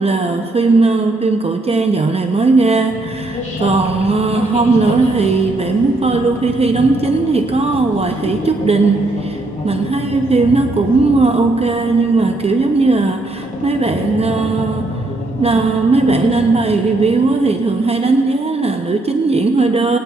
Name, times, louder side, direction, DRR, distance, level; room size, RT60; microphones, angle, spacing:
voice 1, 0.0-20.0, right 3 dB, 20° right, 6 dB, 0.6 m, -16 dB
sound 1, 2.9-17.3, left 2 dB, 25° left, 3.5 m, -27 dB
26.5 x 19.5 x 2.3 m, 2.9 s
cardioid pair, 90°, 30 cm